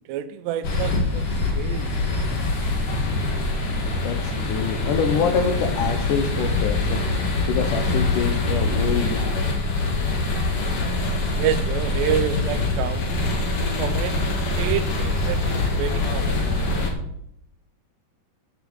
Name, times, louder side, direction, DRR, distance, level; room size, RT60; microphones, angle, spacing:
voice 1, 0.1-1.3 1.5-1.9 11.4-13.1 13.8-16.6, right 11 dB, 80° right, 12 dB, 2.9 m, -28 dB
sound 1, 0.6-16.9, left 2 dB, 45° left, 2.1 m, -24 dB
voice 2, 4.0-7.0 7.5-9.3, left 6 dB, 80° left, 4 dB, 1.9 m, -25 dB
8.9 x 7.6 x 8.2 m, 0.72 s
omnidirectional pair, 5.0 m